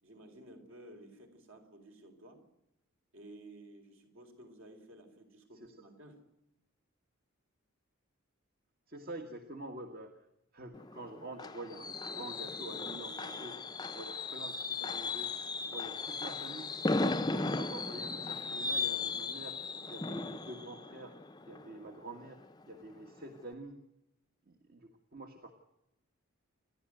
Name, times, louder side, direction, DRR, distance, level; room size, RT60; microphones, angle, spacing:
voice 1, 0.0-2.4 3.1-6.2, right 1 dB, 65° right, 5 dB, 4.6 m, -54 dB
voice 2, 8.9-10.2 10.5-13.6 13.9-15.3 15.6-16.7 17.0-19.6 19.9-21.2 21.5-22.4 22.7-23.8 24.5-25.5, right 1 dB, 45° right, 5 dB, 1.7 m, -47 dB
Fireworks, 10.7-22.4 22.8-23.1 23.4-23.5, left 3 dB, 20° left, 0.7 m, -37 dB
28.0 x 12.0 x 7.9 m, 0.87 s
head